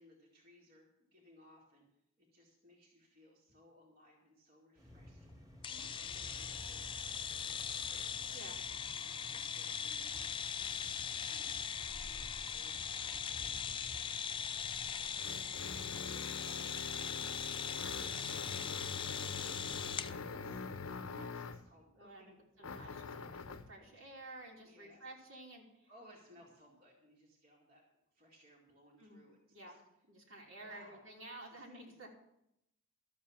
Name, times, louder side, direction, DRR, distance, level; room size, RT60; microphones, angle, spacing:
voice 1, 0.0-1.8 2.2-8.4 8.9-22.4 23.1-23.4 24.6-25.1 25.9-27.8 28.1-29.8 30.2-30.3 30.6-31.0 31.5-32.1, equal, 45° right, -2 dB, 2.3 m, -64 dB
sound 1, 4.8-15.9, equal, 15° right, 2.1 m, -54 dB
sound 2, 5.6-20.1, left 7 dB, 25° left, 0.4 m, -40 dB
Drill On The Other Side Of A Wall, 14.5-21.7 22.6-23.7, left 4 dB, 80° left, 0.7 m, -44 dB
voice 2, 21.9-23.4 23.7-25.9 29.0-29.2 29.5-32.1, right 2 dB, 70° right, -1 dB, 3.0 m, -52 dB
13.0 x 7.5 x 7.2 m, 0.80 s
head